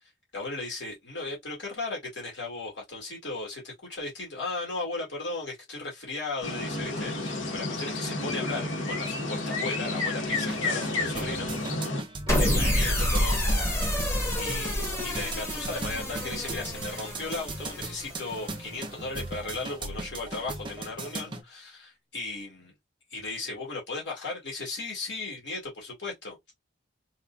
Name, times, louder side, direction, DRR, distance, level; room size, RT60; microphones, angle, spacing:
voice 1, 0.3-12.0 12.4-13.4 14.3-22.7 23.1-26.5, left 3 dB, 65° left, 2.0 m, -36 dB
sound 1, 6.4-12.0, left 2 dB, 85° left, 1.2 m, -31 dB
sound 2, 10.2-21.4, right 2 dB, 25° right, 0.5 m, -38 dB
sound 3, 12.3-18.6, equal, 15° left, 1.1 m, -28 dB
4.2 x 2.3 x 2.3 m
head